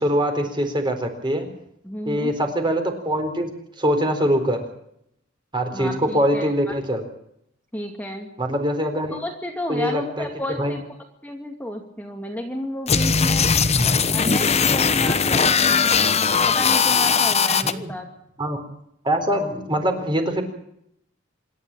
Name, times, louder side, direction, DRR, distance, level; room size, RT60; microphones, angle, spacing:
voice 1, 0.0-1.5 2.1-3.5 3.8-4.6 5.5-7.0 8.4-9.2 9.7-10.3 10.6-10.7 13.7-14.0 17.6-17.9 18.4-18.6 19.0-20.4, equal, 25° right, 5 dB, 4.1 m, -23 dB
voice 2, 1.8-2.3 5.7-6.7 7.7-8.3 9.1-10.8 11.2-13.5 13.8-16.0 16.5-18.1, left 1 dB, 10° left, 3 dB, 2.3 m, -32 dB
sound 1, 12.9-17.7, left 5 dB, 35° left, 1.1 m, -19 dB
26.5 x 12.0 x 9.1 m, 0.73 s
head